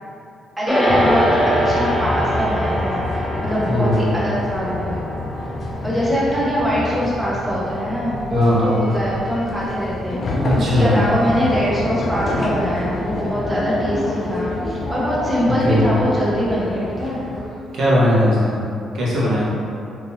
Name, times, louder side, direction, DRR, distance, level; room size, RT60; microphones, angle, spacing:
voice 1, 0.6-5.0 5.8-17.2, equal, 15° right, -7 dB, 1.0 m, -23 dB
sound 1, 0.7-10.2, equal, 10° left, 0.7 m, -25 dB
sound 2, 0.9-17.4, left 2 dB, 45° left, 0.5 m, -28 dB
voice 2, 3.7-4.2 8.3-8.8 10.4-11.0 15.6-15.9 17.7-18.6 18.9-19.4, equal, 70° right, -7 dB, 1.0 m, -18 dB
3.5 x 2.9 x 2.7 m, 2.6 s
cardioid pair, 90°, 0 cm